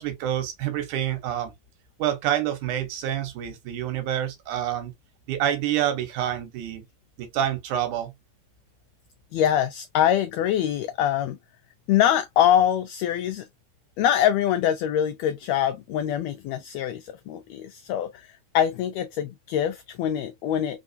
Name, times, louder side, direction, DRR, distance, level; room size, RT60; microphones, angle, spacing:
voice 1, 0.0-1.5 2.0-4.9 5.3-6.9 7.2-8.1, right 11 dB, 80° right, 2.4 m, -27 dB
voice 2, 9.3-11.4 11.9-13.5 14.0-20.8, left 10 dB, 90° left, 1.5 m, -24 dB
4.4 x 3.5 x 2.5 m
omnidirectional pair, 3.6 m